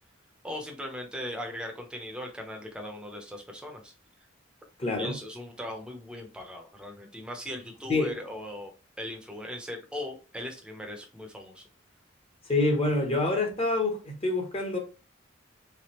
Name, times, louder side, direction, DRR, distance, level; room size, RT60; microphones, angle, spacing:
voice 1, 0.4-3.9 5.0-8.7 9.0-11.6, left 1 dB, 5° right, 0.6 m, -39 dB
voice 2, 4.8-5.2 7.9-8.1 12.5-14.8, left 2 dB, 30° left, 0.9 m, -26 dB
3.4 x 3.4 x 2.9 m
head